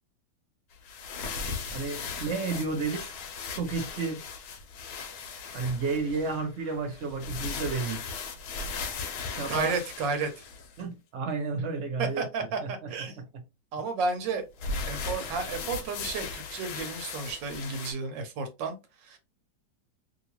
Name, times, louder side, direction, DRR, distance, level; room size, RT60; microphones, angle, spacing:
sound 1, 0.7-10.8 14.6-17.9, left 4 dB, 70° left, 1.1 m, -37 dB
voice 1, 1.7-3.1 3.5-4.2 5.5-8.0 9.3-9.8 10.8-13.2, right 4 dB, 45° right, 1.1 m, -32 dB
voice 2, 9.5-10.4 12.0-13.2 13.7-14.4 14.9-18.8 19.0-19.2, right 4 dB, 85° right, 1.5 m, -32 dB
2.9 x 2.8 x 2.9 m
omnidirectional pair, 1.9 m